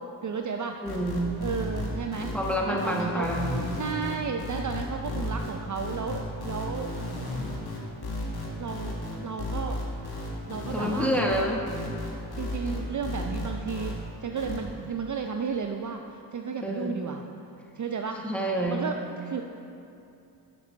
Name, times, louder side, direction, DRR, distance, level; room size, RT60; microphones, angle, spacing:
voice 1, 0.0-0.8 1.4-2.3 2.6-3.3 3.7-6.9 8.5-9.8 10.5-11.6 12.4-13.9 14.2-17.2 17.8-18.2 18.7-19.4, right 5 dB, 45° right, 4 dB, 0.5 m, -33 dB
voice 2, 0.8-1.4 2.3-3.7 10.7-11.7 16.6-17.0 18.2-18.8, equal, 5° left, -1 dB, 1.4 m, -28 dB
sound 1, 0.9-13.9 14.4-14.6, left 2 dB, 60° left, 1.7 m, -34 dB
6.7 x 6.3 x 5.1 m, 2.7 s
supercardioid pair, 40°, 44 cm